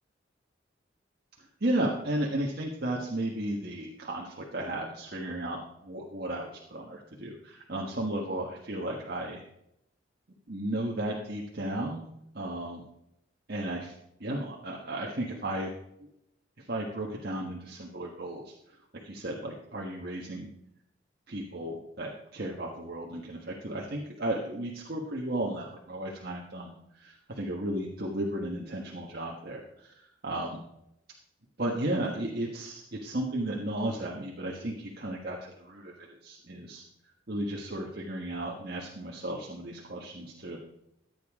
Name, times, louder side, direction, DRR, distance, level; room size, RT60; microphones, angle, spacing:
voice 1, 1.6-9.4 10.5-12.1 12.3-12.8 13.5-13.9 14.2-15.7 16.0-16.1 16.7-18.5 19.0-20.5 21.3-30.6 31.6-36.8 37.3-40.6, right 1 dB, 55° right, -1 dB, 1.5 m, -34 dB
15.0 x 9.3 x 3.7 m, 0.80 s
head